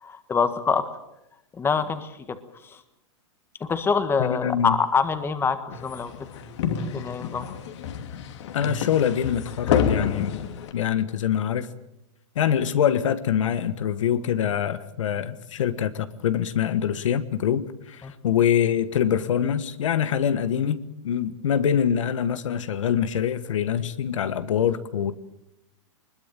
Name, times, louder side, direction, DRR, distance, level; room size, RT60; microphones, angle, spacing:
voice 1, 0.0-0.9 1.6-2.1 3.6-6.1 6.8-7.5 18.0-18.1, left 5 dB, 15° left, 10 dB, 1.6 m, -25 dB
voice 2, 4.2-4.7 8.5-10.4 10.7-11.7 12.3-25.1, left 9 dB, 80° left, 12 dB, 1.4 m, -24 dB
sound 1, 5.7-10.7, left 7 dB, 65° left, 2.8 m, -29 dB
21.0 x 21.0 x 7.5 m, 0.85 s
hypercardioid pair, 140°, 16 cm